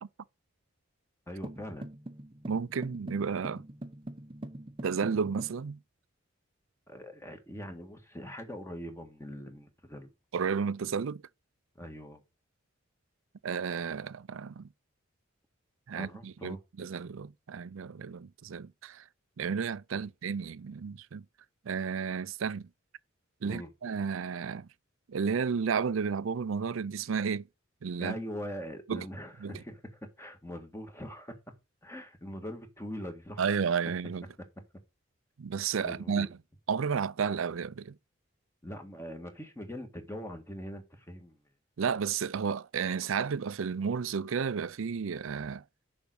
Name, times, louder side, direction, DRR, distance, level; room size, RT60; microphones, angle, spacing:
voice 1, 1.3-1.9 6.9-10.1 11.8-12.2 15.9-16.6 19.9-20.0 23.4-23.7 28.0-31.4 31.8-33.6 35.8-36.3 38.6-41.4, equal, 15° left, 1.6 m, -42 dB
sound 1, 1.4-5.6, right 1 dB, 25° right, 0.8 m, -43 dB
voice 2, 2.5-3.7 4.8-5.8 10.3-11.2 13.4-14.7 15.9-19.1 19.4-21.2 21.7-22.7 23.4-24.7 25.1-27.5 27.8-28.2 28.9-29.1 29.4-29.5 33.4-34.3 35.4-36.3 36.7-38.0 41.8-45.6, right 6 dB, 70° right, 0.5 m, -32 dB
7.0 x 5.2 x 6.3 m
head